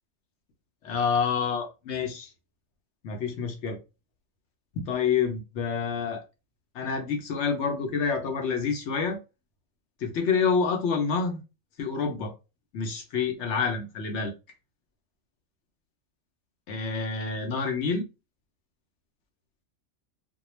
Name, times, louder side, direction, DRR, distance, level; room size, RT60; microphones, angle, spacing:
voice 1, 0.8-2.3 3.0-3.8 4.8-6.2 6.7-9.2 10.0-11.4 11.8-12.3 12.7-14.3 16.7-18.0, left 5 dB, 65° left, 4 dB, 0.8 m, -28 dB
2.2 x 2.2 x 3.0 m, 0.27 s
omnidirectional pair, 1.4 m